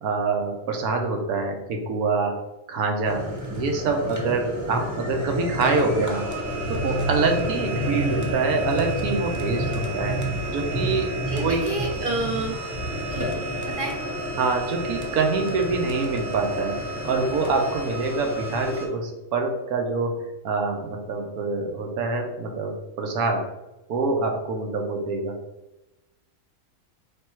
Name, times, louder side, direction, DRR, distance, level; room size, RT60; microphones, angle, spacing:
voice 1, 0.0-2.4 2.7-6.3 6.7-10.2 10.5-11.1 11.4-11.6 14.4-20.2 20.4-23.4 23.9-25.4, right 3 dB, 85° right, 3 dB, 1.3 m, -25 dB
sound 1, 3.0-18.9, right 1 dB, 15° right, 0.7 m, -29 dB
voice 2, 11.3-12.6 13.1-13.3 13.6-14.0, right 2 dB, 60° right, 0 dB, 0.5 m, -29 dB
3.5 x 3.4 x 4.3 m, 0.98 s
omnidirectional pair, 1.5 m